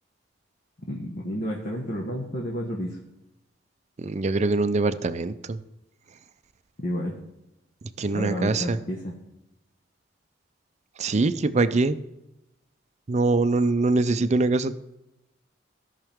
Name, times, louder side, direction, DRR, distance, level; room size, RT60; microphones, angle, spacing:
voice 1, 0.9-3.0 6.8-7.1 8.1-9.1, equal, 55° left, -3 dB, 1.4 m, -31 dB
voice 2, 4.0-5.6 8.0-8.8 11.0-12.0 13.1-14.7, right 3 dB, 40° right, 13 dB, 0.5 m, -23 dB
16.0 x 5.8 x 3.6 m, 0.91 s
head